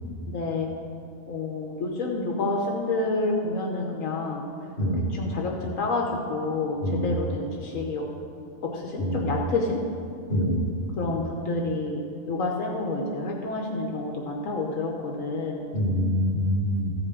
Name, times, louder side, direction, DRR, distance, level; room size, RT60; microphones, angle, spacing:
voice 1, 0.3-0.7 1.3-4.4 5.1-8.1 8.6-9.8 11.0-15.6, left 3 dB, 85° left, -1 dB, 1.3 m, -29 dB
voice 2, 6.8-7.1 9.0-9.3 10.3-10.6 15.7-16.9, equal, 45° left, -3 dB, 2.3 m, -25 dB
14.0 x 5.4 x 6.1 m, 2.5 s
omnidirectional pair, 1.4 m